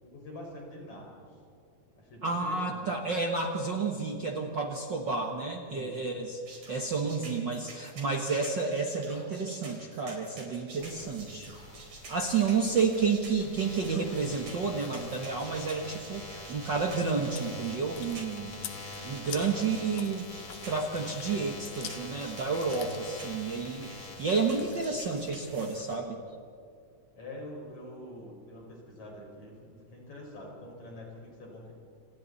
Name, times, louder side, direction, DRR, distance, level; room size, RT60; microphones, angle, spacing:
voice 1, 0.0-1.3 1.9-2.9 5.6-6.2 18.4-18.9 27.2-31.7, left 1 dB, 60° left, -1 dB, 6.9 m, -46 dB
voice 2, 2.2-6.4 6.7-11.5 12.1-18.5 19.0-20.3 20.6-26.2, right 4 dB, 45° right, 1 dB, 1.7 m, -30 dB
sound 1, 6.5-25.9, right 3 dB, 65° right, 5.4 m, -49 dB
sound 2, 10.8-25.3, left 2 dB, 40° left, 3.1 m, -45 dB
Chewing mastication, 17.1-26.0, left 9 dB, 75° left, 2.8 m, -48 dB
30.0 x 27.5 x 4.2 m, 2.4 s
omnidirectional pair, 3.6 m